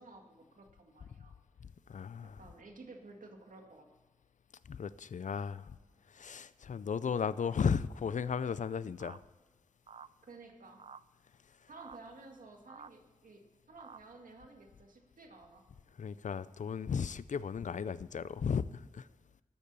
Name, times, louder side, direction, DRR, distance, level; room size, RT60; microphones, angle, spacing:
voice 1, 0.0-1.3 2.2-3.9 10.2-10.9 11.7-15.6, right 3 dB, 70° right, 2.0 m, -53 dB
voice 2, 1.9-2.4 4.7-5.7 6.1-9.2 16.0-19.1, left 6 dB, 60° left, 0.5 m, -35 dB
sound 1, 9.0-9.2 9.9-10.1 10.8-11.0 11.8-12.0 12.7-12.9 13.8-14.0, right 6 dB, 45° right, 0.4 m, -50 dB
12.5 x 8.5 x 6.8 m
wide cardioid pair, 100°, 14 cm